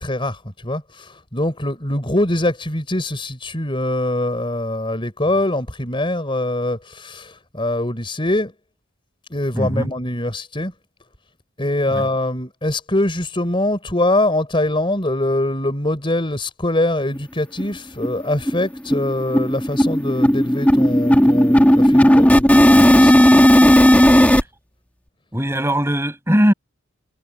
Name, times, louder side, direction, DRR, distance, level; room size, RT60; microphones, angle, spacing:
voice 1, 0.0-8.5 9.3-10.7 11.6-23.2, left 1 dB, 25° left, 4.2 m, -23 dB
voice 2, 9.5-9.9 11.9-12.0 25.3-26.5, equal, 10° right, 6.9 m, -19 dB
sound 1, 17.2-17.3 17.6-17.7 18.0-18.2 18.5-24.4, equal, 5° left, 2.4 m, -13 dB
head